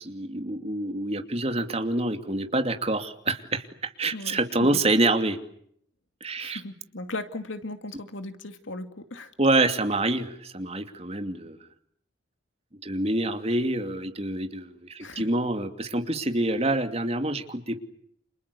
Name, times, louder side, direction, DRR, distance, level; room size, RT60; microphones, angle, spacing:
voice 1, 0.0-5.4 6.2-6.6 9.4-11.6 12.8-17.8, right 2 dB, 35° right, 6 dB, 2.6 m, -26 dB
voice 2, 4.1-4.8 6.4-9.3 15.0-15.3, left 2 dB, 85° left, 8 dB, 2.5 m, -37 dB
29.5 x 28.0 x 7.0 m, 0.69 s
head